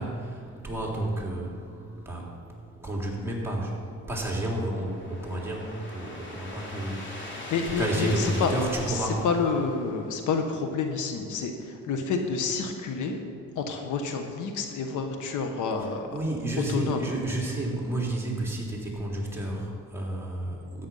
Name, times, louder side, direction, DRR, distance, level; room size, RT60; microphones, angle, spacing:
voice 1, 0.0-9.2 15.8-20.9, right 1 dB, 10° right, -3 dB, 3.3 m, -31 dB
sound 1, 3.8-10.3, left 1 dB, 40° left, 2.9 m, -41 dB
voice 2, 7.5-8.5 9.2-13.2 13.6-16.1 16.7-17.0, left 5 dB, 80° left, 5 dB, 1.3 m, -29 dB
13.0 x 8.9 x 5.6 m, 2.3 s
cardioid pair, 90°, 30 cm